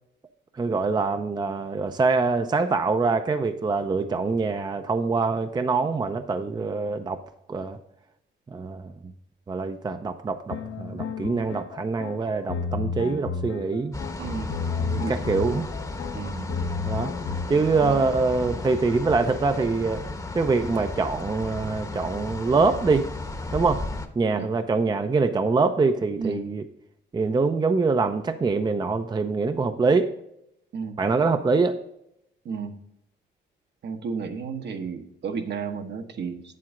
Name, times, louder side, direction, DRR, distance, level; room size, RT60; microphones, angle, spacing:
voice 1, 0.6-7.2 7.5-7.8 8.5-8.9 9.5-14.0 14.8-15.7 16.8-17.1 17.5-20.1 20.3-23.1 23.5-23.8 24.2-26.6 27.1-30.1 31.0-31.8, right 4 dB, 20° right, 8 dB, 0.5 m, -24 dB
sound 1, 10.5-18.4, left 6 dB, 70° left, 0.9 m, -33 dB
sound 2, 13.9-24.1, left 2 dB, 15° left, 0.9 m, -34 dB
voice 2, 14.2-14.5 15.0-15.1 16.1-16.5 17.8-18.0 24.3-24.5 26.2-26.4 30.7-31.0 32.4-32.7 33.8-36.4, right 5 dB, 60° right, 6 dB, 1.1 m, -32 dB
7.7 x 7.6 x 3.6 m, 0.76 s
cardioid pair, 90°, 20 cm